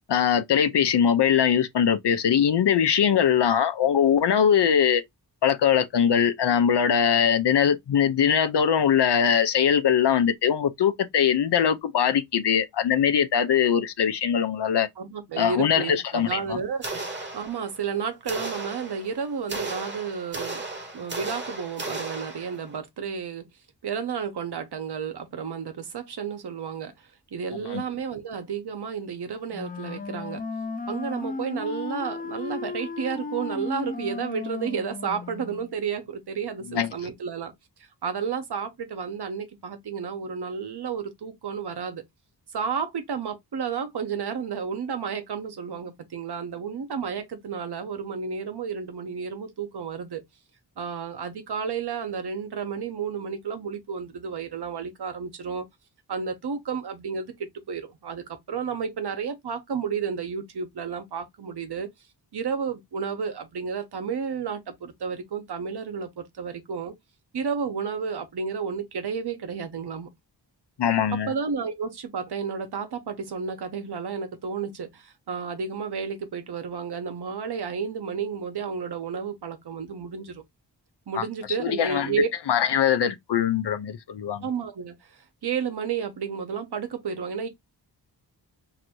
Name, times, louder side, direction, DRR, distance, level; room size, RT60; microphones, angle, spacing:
voice 1, 0.1-5.0 5.4-14.9 15.4-16.6 27.7-27.8 36.7-36.9 70.8-71.3 81.2-81.3 81.6-82.1 82.5-84.4, left 8 dB, 75° left, 0.7 m, -22 dB
voice 2, 15.0-17.0 17.3-20.6 20.9-23.5 23.8-30.4 30.9-37.5 38.0-42.0 42.5-50.2 50.8-55.6 56.1-61.9 62.3-66.9 67.3-70.1 71.3-80.4 81.1-82.3 84.4-87.5, right 6 dB, 65° right, 1.1 m, -32 dB
sound 1, 16.8-17.9 18.3-22.8, right 2 dB, 25° right, 1.0 m, -35 dB
Wind instrument woodwind instrument, 29.5-35.7, left 4 dB, 20° left, 0.5 m, -35 dB
2.9 x 2.7 x 4.4 m
wide cardioid pair, 150°, 42 cm